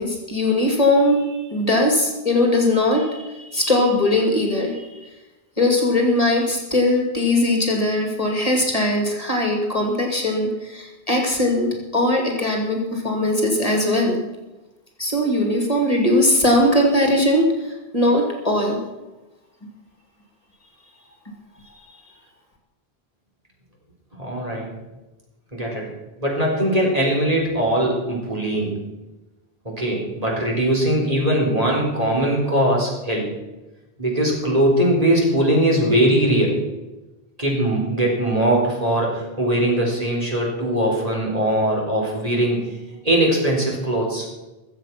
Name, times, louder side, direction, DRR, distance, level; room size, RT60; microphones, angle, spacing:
voice 1, 0.0-5.1 5.6-14.2 15.0-18.8, left 1 dB, 35° left, 1 dB, 2.6 m, -20 dB
voice 2, 24.2-24.7 25.5-25.9 26.2-28.8 29.6-33.3 34.0-36.6 37.4-42.6 43.0-44.3, right 1 dB, 35° right, -2 dB, 4.2 m, -20 dB
22.5 x 7.9 x 6.0 m, 1.1 s
omnidirectional pair, 1.0 m